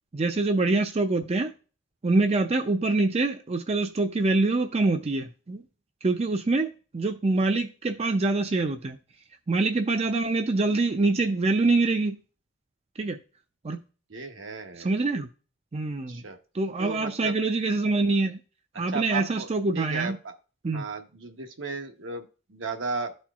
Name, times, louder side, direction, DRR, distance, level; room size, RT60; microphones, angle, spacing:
voice 1, 0.1-1.5 2.0-5.6 6.0-9.0 9.5-12.2 13.0-13.2 13.6-13.8 14.8-15.3 15.7-16.2 16.5-18.4 18.8-20.2 20.6-20.8, right 3 dB, 35° right, 0.5 m, -25 dB
voice 2, 14.1-14.9 16.1-16.4 16.8-17.4 18.9-19.5 19.7-20.3 20.7-23.2, right 3 dB, 70° right, 1.0 m, -35 dB
12.5 x 4.3 x 2.4 m
head